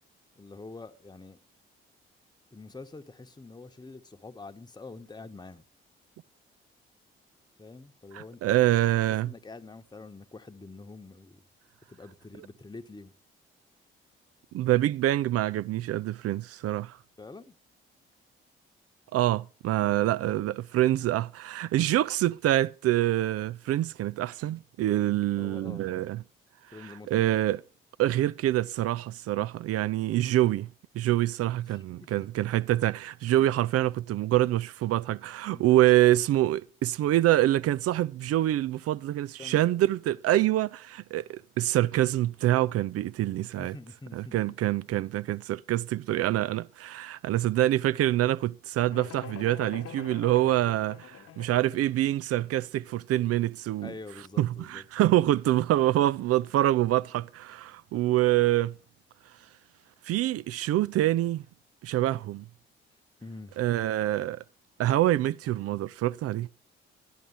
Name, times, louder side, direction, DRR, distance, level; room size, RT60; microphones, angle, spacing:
voice 1, 0.4-1.4 2.5-5.6 7.6-8.7 9.2-11.4 11.9-13.1 17.2-17.6 19.7-19.9 25.4-25.8 26.7-27.3 31.7-31.8 33.3-33.5 35.5-35.6 39.4-39.7 43.6-44.4 53.8-54.8 63.2-63.5, left 3 dB, 15° left, 1.2 m, -46 dB
voice 2, 8.1-9.3 14.5-17.0 19.1-26.2 26.8-27.6 28.0-30.7 30.9-43.7 44.1-53.9 54.4-58.7 60.1-61.4 61.8-62.4 63.6-64.4 64.8-66.5, right 14 dB, 55° right, 0.5 m, -26 dB
sound 1, 48.9-51.8, left 9 dB, 50° left, 1.3 m, -44 dB
11.5 x 11.0 x 5.5 m
figure-of-eight pair, 40°, 30 cm